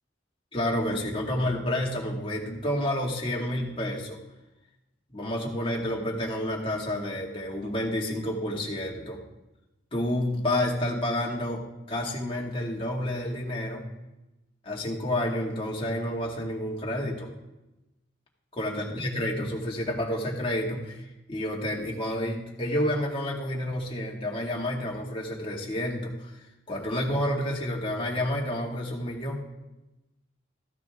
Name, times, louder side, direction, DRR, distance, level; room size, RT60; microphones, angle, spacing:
voice 1, 0.5-4.2 5.1-9.2 9.9-13.9 14.7-17.3 18.5-26.3 26.7-29.5, left 1 dB, 25° left, -2 dB, 2.1 m, -29 dB
14.5 x 9.5 x 3.6 m, 0.99 s
head